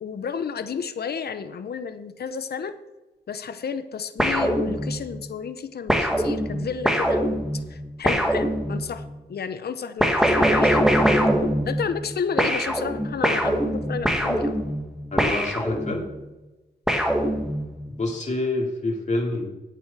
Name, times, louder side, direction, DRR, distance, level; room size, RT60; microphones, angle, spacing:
voice 1, 0.0-2.7 3.3-7.4 7.7-9.0 9.3-11.3 11.7-14.5, left 6 dB, 60° left, 11 dB, 0.8 m, -31 dB
sound 1, 4.2-5.2 5.9-9.1 10.0-12.1 12.4-16.1 16.9-17.9, equal, 5° right, 1.8 m, -23 dB
voice 2, 15.1-16.1 17.9-19.5, left 2 dB, 40° left, -1 dB, 2.5 m, -27 dB
9.1 x 6.3 x 6.8 m, 1.1 s
cardioid pair, 80°, 18 cm